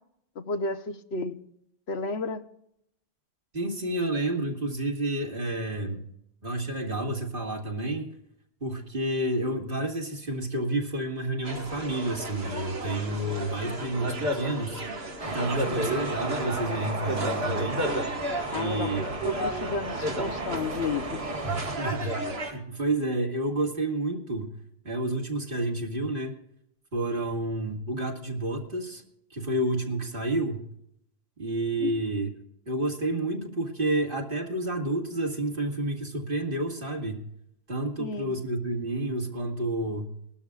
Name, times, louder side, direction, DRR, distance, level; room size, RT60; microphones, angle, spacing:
voice 1, 0.4-1.4 1.9-2.4 15.6-15.9 18.5-21.2 31.8-31.9 38.0-38.4, left 4 dB, 90° left, 10 dB, 1.2 m, -32 dB
voice 2, 3.5-6.0 6.4-8.1 8.6-14.8 15.3-17.8 18.5-19.1 21.4-24.6 24.8-26.4 26.9-29.0 29.3-30.7 31.4-32.3 32.7-37.3 37.7-40.1, right 2 dB, 60° right, 2 dB, 2.3 m, -30 dB
sound 1, 11.4-22.5, right 1 dB, 75° right, 2.1 m, -33 dB
sound 2, 15.2-21.8, right 2 dB, 35° right, 1.2 m, -35 dB
21.0 x 12.5 x 2.4 m, 0.74 s
omnidirectional pair, 1.0 m